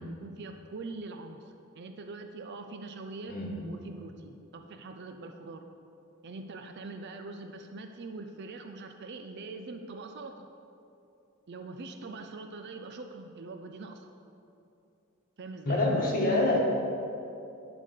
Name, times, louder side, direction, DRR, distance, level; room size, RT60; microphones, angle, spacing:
voice 1, 0.0-3.4 3.6-5.6 6.2-10.5 11.5-14.1 15.4-16.6, right 3 dB, 55° right, 6 dB, 0.5 m, -43 dB
voice 2, 15.6-16.6, left 2 dB, 45° left, -2 dB, 1.6 m, -26 dB
11.0 x 4.0 x 6.5 m, 2.7 s
head